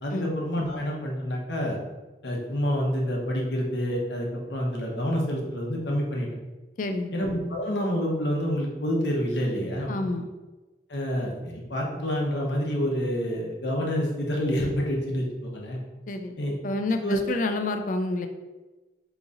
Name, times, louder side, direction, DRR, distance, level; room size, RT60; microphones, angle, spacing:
voice 1, 0.0-1.8 2.2-6.3 7.1-9.9 10.9-15.8 16.4-16.5 17.0-17.2, equal, 75° left, -1 dB, 0.9 m, -28 dB
voice 2, 6.8-7.1 9.9-10.3 16.1-16.4 16.6-18.3, left 2 dB, 45° left, 6 dB, 0.4 m, -28 dB
3.6 x 3.0 x 3.9 m, 1.2 s
head